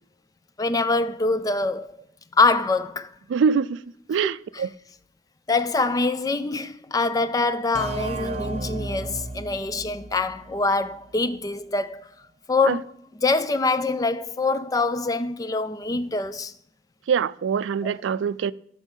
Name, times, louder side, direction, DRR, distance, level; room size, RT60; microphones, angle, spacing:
voice 1, 0.6-2.0 2.4-3.1 4.5-4.6 5.5-12.1 12.5-12.8 13.2-16.5 17.8-17.9, left 3 dB, 20° left, 0.4 m, -24 dB
voice 2, 3.3-3.8 4.1-4.7 12.7-12.8 17.1-18.5, right 6 dB, 90° right, 0.3 m, -23 dB
sound 1, 7.7-11.3, right 2 dB, 35° right, 0.7 m, -34 dB
12.5 x 4.5 x 5.3 m
head